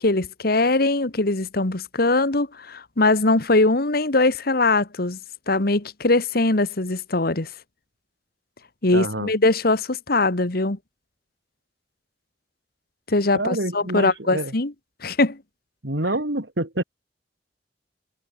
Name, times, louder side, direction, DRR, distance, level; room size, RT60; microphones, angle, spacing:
voice 1, 0.0-5.2 5.5-7.5 8.8-10.8 13.1-14.7 15.0-15.4, left 2 dB, 60° left, 1.7 m, -21 dB
voice 2, 8.9-9.3 13.3-14.5 15.8-16.8, right 1 dB, 80° right, 3.5 m, -27 dB
head